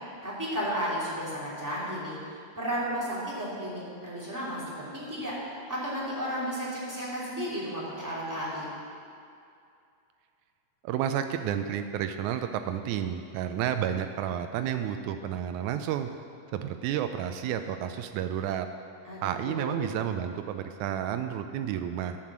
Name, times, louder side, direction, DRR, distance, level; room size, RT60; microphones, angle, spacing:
voice 1, 0.2-8.7 19.0-19.8, equal, 5° right, -8 dB, 2.5 m, -33 dB
voice 2, 10.8-16.1 16.5-18.7 19.2-22.2, right 10 dB, 90° right, 8 dB, 1.7 m, -31 dB
10.5 x 7.7 x 7.3 m, 2.5 s
omnidirectional pair, 4.0 m